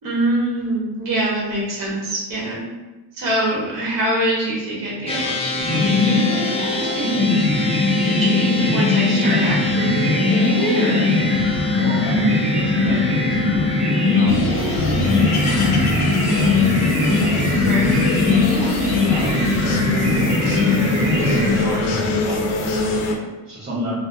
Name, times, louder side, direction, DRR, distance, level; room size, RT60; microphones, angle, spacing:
voice 1, 0.0-2.6 3.1-7.3 8.0-11.2 17.6-17.9, right 1 dB, 55° right, -5 dB, 1.4 m, -25 dB
sound 1, 5.1-15.9, left 3 dB, 15° left, 0.4 m, -29 dB
sound 2, 5.6-22.2, left 2 dB, 40° right, 1.2 m, -20 dB
voice 2, 11.7-16.1 16.4-16.6 17.2-20.4 21.1-24.0, equal, 20° right, -10 dB, 0.9 m, -30 dB
sound 3, 14.3-23.2, left 2 dB, 80° left, 0.6 m, -24 dB
2.6 x 2.5 x 3.3 m, 1.1 s
cardioid pair, 140°, 39 cm